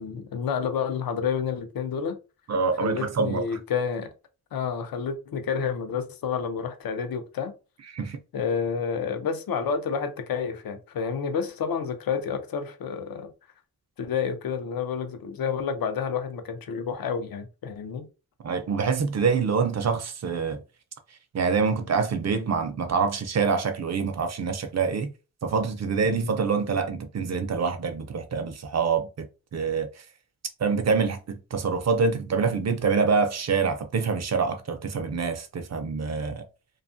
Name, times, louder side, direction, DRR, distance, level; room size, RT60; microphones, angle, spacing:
voice 1, 0.0-2.2 2.8-4.1 4.5-7.5 8.3-13.3 14.0-18.1 26.0-26.3, left 6 dB, 70° left, 0.5 m, -29 dB
voice 2, 2.5-3.4 7.9-8.2 18.4-20.6 21.3-25.1 25.4-29.3 29.5-30.1 30.6-36.5, right 5 dB, 45° right, 0.4 m, -26 dB
2.6 x 2.3 x 2.5 m
wide cardioid pair, 155°, 37 cm